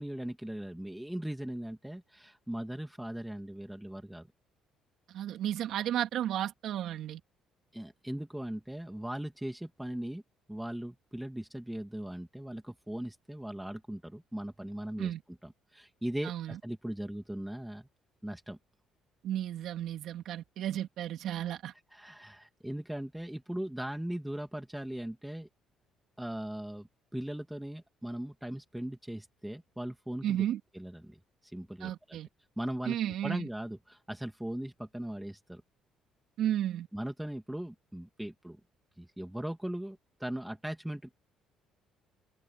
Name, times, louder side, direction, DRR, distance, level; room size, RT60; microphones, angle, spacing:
voice 1, 0.0-4.3 7.7-10.2 10.5-15.1 15.4-17.9 18.2-18.6 21.9-25.5 26.2-30.5 30.7-32.2 32.6-33.0 33.2-35.6 36.9-38.6 39.0-41.1, right 1 dB, 5° right, 2.7 m, -39 dB
voice 2, 5.1-7.2 15.0-15.2 16.2-16.6 19.2-21.7 30.2-30.6 31.8-32.3 32.9-33.5 36.4-36.9, right 11 dB, 70° right, 3.4 m, -33 dB
supercardioid pair, 80°, 0 cm